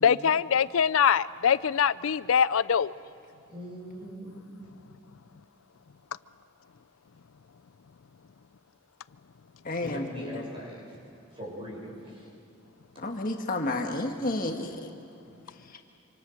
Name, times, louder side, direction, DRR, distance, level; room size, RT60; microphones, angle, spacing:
voice 1, 0.0-2.9, left 7 dB, 85° left, 17 dB, 0.5 m, -23 dB
voice 2, 3.5-4.3 9.8-11.0 11.3-12.3 13.4-13.5, equal, 25° right, -2 dB, 7.2 m, -41 dB
voice 3, 9.6-10.0 13.0-14.9, left 2 dB, 45° left, 3 dB, 1.6 m, -30 dB
27.0 x 26.0 x 6.4 m, 2.8 s
head